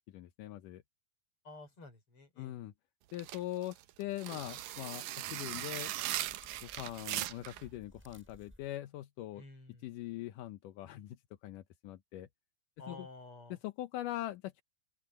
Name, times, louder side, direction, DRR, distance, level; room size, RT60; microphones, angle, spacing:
voice 1, 0.1-0.8 2.4-2.7 3.1-5.9 6.6-9.4 9.8-12.3 12.9-13.1 13.6-14.6, left 14 dB, 70° left, 2.1 m, -42 dB
voice 2, 1.4-2.6 9.3-9.9 12.8-13.6, left 2 dB, 35° left, 5.8 m, -51 dB
sound 1, 3.1-7.6, right 14 dB, 75° right, 2.1 m, -39 dB
sound 2, 5.8-8.7, equal, 5° right, 7.2 m, -60 dB
open air
omnidirectional pair, 4.6 m